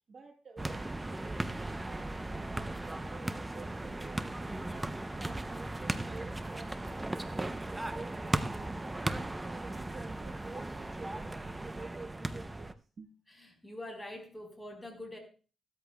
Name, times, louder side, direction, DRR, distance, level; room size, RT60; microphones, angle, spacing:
voice 1, 0.1-4.9 5.2-7.1 7.3-8.4 8.7-13.2, right 4 dB, 55° right, 3 dB, 1.2 m, -50 dB
sound 1, 0.6-12.7, right 2 dB, 15° right, 0.6 m, -37 dB
voice 2, 13.3-15.2, left 1 dB, 10° left, 2 dB, 4.4 m, -44 dB
15.5 x 13.0 x 2.3 m, 0.36 s
cardioid pair, 115°, 0 cm